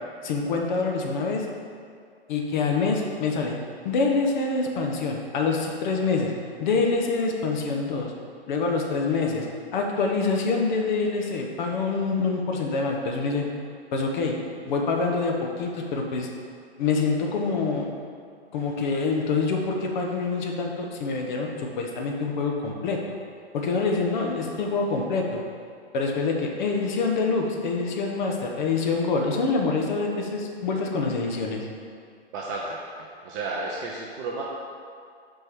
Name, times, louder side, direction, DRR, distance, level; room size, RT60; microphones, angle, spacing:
voice 1, 0.2-1.5 2.3-3.6 3.8-6.3 6.6-8.1 8.5-9.5 9.7-13.5 13.9-14.4 14.6-16.3 16.8-17.9 18.5-23.0 23.5-25.4 25.9-31.7, left 4 dB, 45° left, 1 dB, 1.2 m, -26 dB
voice 2, 32.3-32.8 33.2-34.4, right 3 dB, 20° right, -2 dB, 0.4 m, -32 dB
6.2 x 4.6 x 6.1 m, 2.2 s
hypercardioid pair, 140°, 32 cm